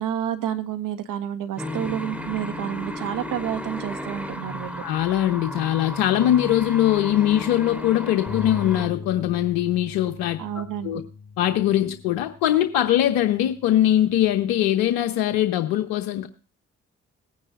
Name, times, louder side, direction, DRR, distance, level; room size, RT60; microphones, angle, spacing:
voice 1, 0.0-4.8 10.4-11.0, right 10 dB, 70° right, 7 dB, 1.6 m, -29 dB
sound 1, 1.6-8.9, equal, 5° right, 3.3 m, -34 dB
voice 2, 4.8-10.4 10.8-11.0 11.4-16.3, left 12 dB, 85° left, 6 dB, 1.0 m, -21 dB
sound 2, 8.3-14.5, left 5 dB, 50° left, 1.7 m, -39 dB
19.0 x 9.6 x 2.5 m, 0.35 s
hypercardioid pair, 50°, 33 cm